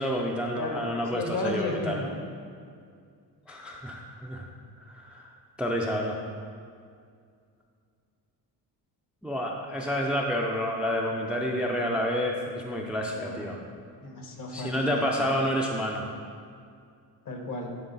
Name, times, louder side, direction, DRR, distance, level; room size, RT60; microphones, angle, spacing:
voice 1, 0.0-2.0 3.5-4.5 4.8-6.2 9.2-13.6 14.5-16.1, equal, 5° right, 0 dB, 0.4 m, -29 dB
voice 2, 0.5-2.1 13.1-13.7 14.0-15.3 17.2-17.7, left 2 dB, 50° left, 2 dB, 1.2 m, -34 dB
10.5 x 3.7 x 4.0 m, 2.3 s
cardioid pair, 125°, 41 cm